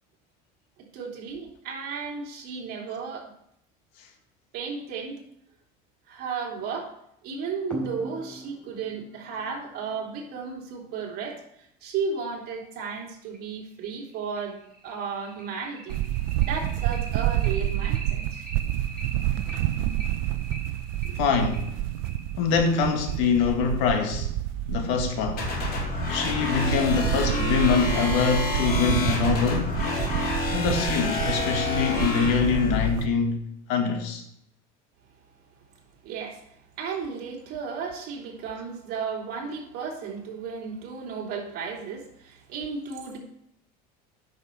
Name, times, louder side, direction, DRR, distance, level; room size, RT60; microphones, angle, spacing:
voice 1, 0.8-3.3 4.5-5.2 6.1-6.9 7.2-16.0 16.4-18.5 21.0-21.2 36.0-43.2, right 5 dB, 55° right, 3.2 m, -34 dB
sound 1, 7.7-10.9 12.3-12.4 12.8-12.9 13.3-13.4 13.8-23.9, right 2 dB, 5° left, 4.0 m, -42 dB
sound 2, 15.9-33.1, right 14 dB, 70° right, 0.7 m, -29 dB
voice 2, 21.2-21.7 22.4-24.3 24.7-25.5 26.1-29.8 30.5-34.2, left 6 dB, 75° left, 2.0 m, -24 dB
sound 3, 25.4-32.9, left 4 dB, 55° left, 4.2 m, -29 dB
9.5 x 6.4 x 6.7 m
cardioid pair, 135°, 19 cm